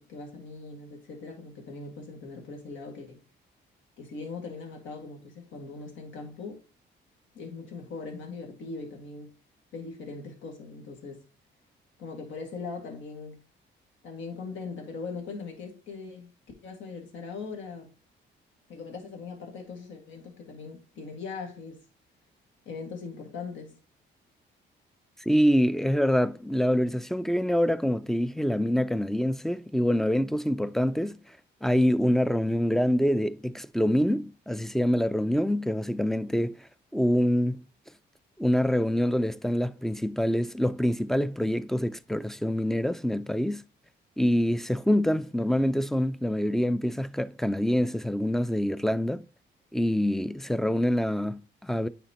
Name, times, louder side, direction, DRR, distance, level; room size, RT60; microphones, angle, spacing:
voice 1, 0.0-3.2 4.0-6.6 7.3-9.3 9.7-11.2 12.0-13.4 14.0-16.3 16.6-17.9 18.7-21.8 22.7-23.8, left 4 dB, 75° left, 2.0 m, -40 dB
voice 2, 25.3-31.2 31.6-36.6 36.9-37.6 38.4-43.6 44.2-49.2 49.7-51.9, equal, ahead, 0.3 m, -25 dB
9.1 x 4.1 x 3.0 m
cardioid pair, 90°, 20 cm